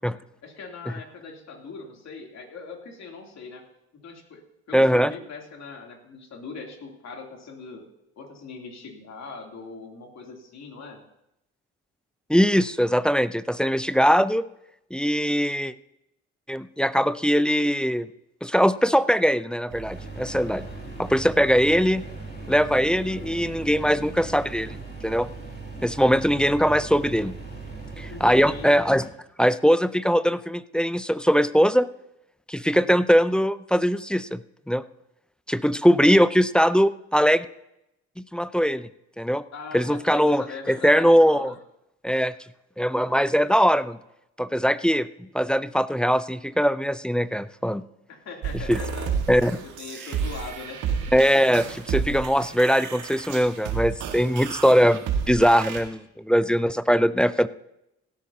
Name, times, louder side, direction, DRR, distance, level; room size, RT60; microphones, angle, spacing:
voice 1, 0.4-3.6 3.9-7.9 8.2-11.0 22.5-23.5 28.1-28.8 32.6-32.9 39.5-41.6 48.1-49.2 49.6-51.1, left 4 dB, 55° left, 1 dB, 3.1 m, -41 dB
voice 2, 4.7-5.1 12.3-14.4 14.9-15.7 16.5-18.1 18.4-20.7 21.0-22.0 22.5-24.8 25.0-25.3 25.8-27.3 28.0-29.1 29.4-31.9 32.5-34.4 34.7-34.8 35.5-37.5 38.2-38.9 39.2-39.4 39.7-41.5 42.0-42.3 42.8-44.0 44.4-47.8 48.7-48.8 49.3-49.6 51.1-57.5, equal, 5° left, 15 dB, 0.5 m, -21 dB
sound 1, 19.7-28.7, right 7 dB, 35° right, 1.0 m, -40 dB
sound 2, 19.9-29.1, left 2 dB, 30° left, 2.7 m, -43 dB
sound 3, 48.4-55.8, right 7 dB, 70° right, 1.8 m, -31 dB
17.0 x 13.0 x 2.8 m, 0.84 s
supercardioid pair, 60°, 32 cm